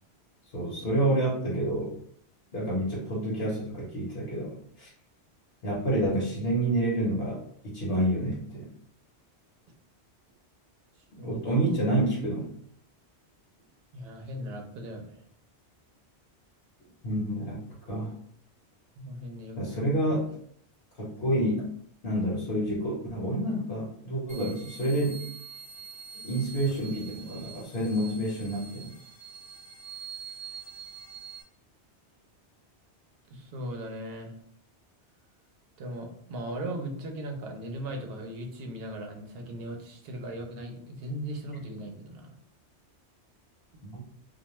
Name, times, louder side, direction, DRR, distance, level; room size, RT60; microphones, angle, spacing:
voice 1, 0.5-1.9 2.5-4.9 5.6-8.6 11.2-12.5 17.0-17.6 17.8-18.1 19.6-20.3 21.0-21.6 22.0-25.3 26.2-28.9 43.8-44.0, right 1 dB, 65° left, -5 dB, 1.0 m, -28 dB
voice 2, 13.9-15.2 19.0-19.7 33.3-34.3 35.8-42.4, right 1 dB, 65° right, 2 dB, 0.8 m, -38 dB
sound 1, 24.3-31.4, right 6 dB, 10° left, 0.9 m, -45 dB
2.4 x 2.2 x 2.9 m, 0.64 s
omnidirectional pair, 1.1 m